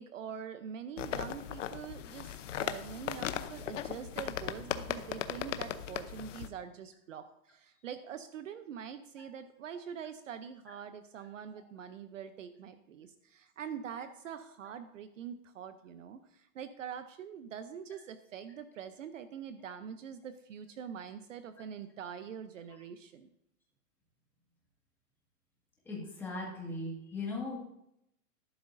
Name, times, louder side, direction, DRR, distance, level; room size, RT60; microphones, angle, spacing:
voice 1, 0.0-23.3, right 8 dB, 55° right, 10 dB, 0.8 m, -44 dB
sound 1, 1.0-6.5, left 10 dB, 50° left, 0.8 m, -38 dB
voice 2, 25.8-27.6, left 2 dB, 5° left, -4 dB, 1.8 m, -38 dB
13.5 x 11.5 x 2.6 m, 0.78 s
supercardioid pair, 180°, 47 cm